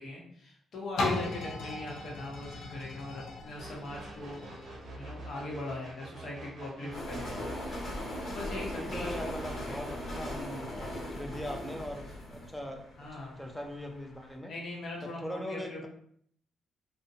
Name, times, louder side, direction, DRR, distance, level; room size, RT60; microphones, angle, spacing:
voice 1, 0.0-7.5 8.2-9.3 9.6-9.8 13.0-13.4 14.5-15.9, left 2 dB, 60° left, -2 dB, 0.9 m, -41 dB
sound 1, 1.0-6.7 7.3-7.4, left 2 dB, 75° left, 0.5 m, -38 dB
sound 2, 3.6-10.4, right 2 dB, 50° right, 0.6 m, -47 dB
voice 2, 6.8-7.2 8.8-14.5 15.0-15.9, equal, 5° left, 2 dB, 0.5 m, -41 dB
sound 3, 6.9-14.0, left 1 dB, 40° left, 1.5 m, -39 dB
2.5 x 2.2 x 2.7 m, 0.64 s
cardioid pair, 90°, 0 cm